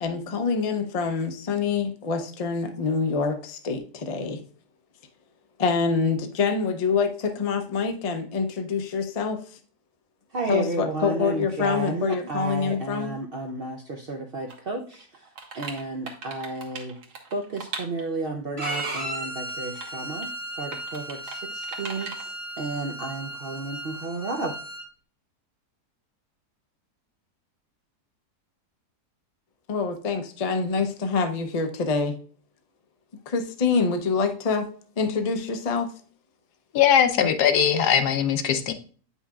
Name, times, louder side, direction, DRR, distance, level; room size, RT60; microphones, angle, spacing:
voice 1, 0.0-4.4 5.6-9.4 10.5-13.2 29.7-32.1 33.3-35.9, left 5 dB, 60° left, 6 dB, 0.3 m, -26 dB
voice 2, 10.3-15.1 15.5-17.0 17.3-20.3 20.6-22.1 22.6-24.6, right 3 dB, 60° right, 2 dB, 0.6 m, -32 dB
sound 1, 14.5-14.6 14.9-18.2 18.6-19.0 19.5-19.9 20.2-20.3 20.7-21.4 21.6-22.3, right 4 dB, 80° right, 1.7 m, -39 dB
Bowed string instrument, 18.6-24.8, right 1 dB, 20° right, 1.4 m, -35 dB
voice 3, 36.7-38.7, left 8 dB, 85° left, 8 dB, 1.3 m, -20 dB
8.5 x 5.5 x 2.3 m, 0.43 s
omnidirectional pair, 1.7 m